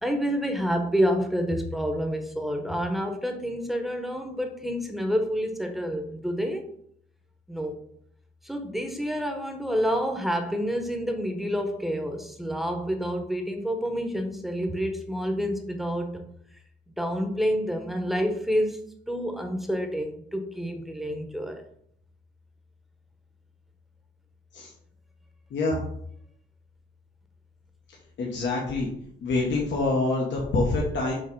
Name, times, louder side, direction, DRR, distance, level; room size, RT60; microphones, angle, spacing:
voice 1, 0.0-6.6 7.5-7.8 8.4-16.3 17.0-21.6, equal, ahead, 4 dB, 1.0 m, -28 dB
voice 2, 28.2-28.9 29.2-31.1, left 3 dB, 65° left, -2 dB, 1.3 m, -26 dB
5.6 x 3.3 x 5.4 m, 0.69 s
cardioid pair, 90°, 20 cm